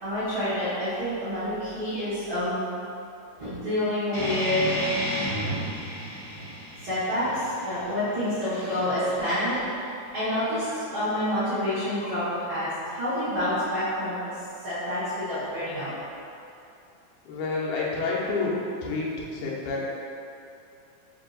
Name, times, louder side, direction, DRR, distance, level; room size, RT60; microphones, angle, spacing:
voice 1, 0.0-2.6 3.4-4.8 6.8-9.7 10.1-14.2 14.6-15.9, left 1 dB, 50° right, -14 dB, 1.6 m, -28 dB
sound 1, 4.1-9.2, equal, 65° left, 0.4 m, -33 dB
voice 2, 17.3-18.5 18.8-19.9, left 3 dB, 85° left, -4 dB, 2.2 m, -29 dB
5.0 x 2.7 x 3.8 m, 2.7 s
omnidirectional pair, 3.6 m